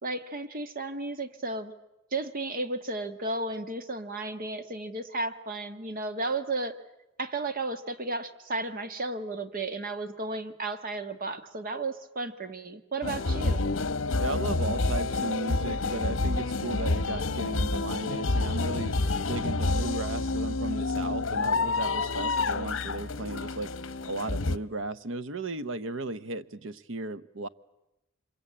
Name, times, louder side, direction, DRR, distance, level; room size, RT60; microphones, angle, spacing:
voice 1, 0.0-1.7 2.1-6.8 7.2-13.6, right 2 dB, 45° right, 10 dB, 1.4 m, -33 dB
sound 1, 13.0-24.6, left 3 dB, 70° left, 0.9 m, -28 dB
voice 2, 14.2-19.0 19.3-23.7 24.0-27.5, right 2 dB, 65° right, 15 dB, 0.9 m, -35 dB
26.0 x 22.5 x 8.7 m, 0.93 s
head